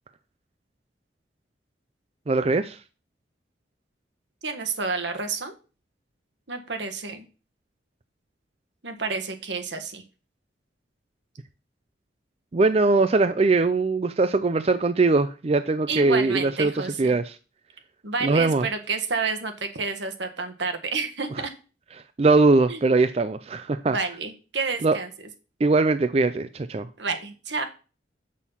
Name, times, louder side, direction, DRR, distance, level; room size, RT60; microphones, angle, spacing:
voice 1, 2.3-2.8 12.5-17.4 18.2-18.7 22.2-24.0 24.8-25.0 25.6-26.9, right 3 dB, 35° right, 0.4 m, -21 dB
voice 2, 4.4-5.5 6.5-7.3 8.8-10.0 15.9-17.1 18.0-21.5 22.7-22.8 23.9-25.1 27.0-27.6, right 4 dB, 75° right, 1.5 m, -29 dB
7.3 x 6.4 x 5.6 m
head